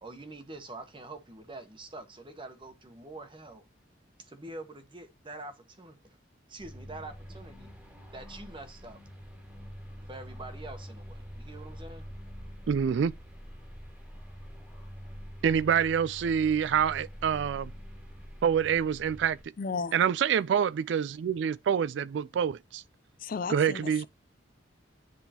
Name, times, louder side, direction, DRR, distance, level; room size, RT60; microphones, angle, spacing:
voice 1, 0.0-3.7 4.2-6.2 6.5-7.7 8.1-9.0 10.1-12.1, right 2 dB, 25° right, 1.1 m, -45 dB
sound 1, 6.6-19.4, equal, 5° right, 1.5 m, -45 dB
voice 2, 12.7-13.1 15.4-17.7 18.4-19.4 19.9-22.8 23.5-24.1, right 8 dB, 65° right, 0.3 m, -26 dB
voice 3, 19.6-20.0 23.2-24.1, left 5 dB, 50° left, 0.4 m, -34 dB
10.0 x 3.6 x 2.9 m
head